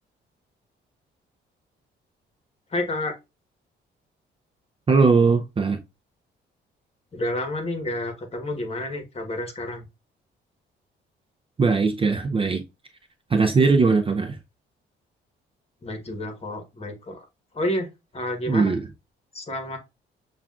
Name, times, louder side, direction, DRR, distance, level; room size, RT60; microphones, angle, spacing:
voice 1, 2.7-3.2 7.1-9.9 15.8-17.3 17.5-18.8 19.3-19.8, left 1 dB, 30° left, 1.3 m, -30 dB
voice 2, 4.9-5.8 11.6-12.6 13.3-14.4 18.5-18.8, right 4 dB, 30° right, 0.5 m, -20 dB
6.9 x 2.4 x 2.4 m
cardioid pair, 90°, 20 cm